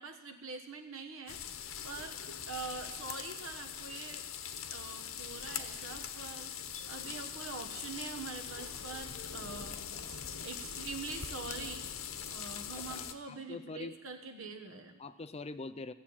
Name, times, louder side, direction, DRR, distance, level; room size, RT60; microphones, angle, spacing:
voice 1, 0.0-4.3 4.7-6.5 6.9-11.9 12.3-14.9, right 4 dB, 80° right, 6 dB, 1.5 m, -44 dB
sound 1, 1.3-13.1, left 8 dB, 85° left, 0.9 m, -42 dB
voice 2, 12.8-14.0 15.0-15.9, left 3 dB, 30° left, 12 dB, 0.5 m, -44 dB
17.0 x 7.3 x 8.7 m, 1.1 s
head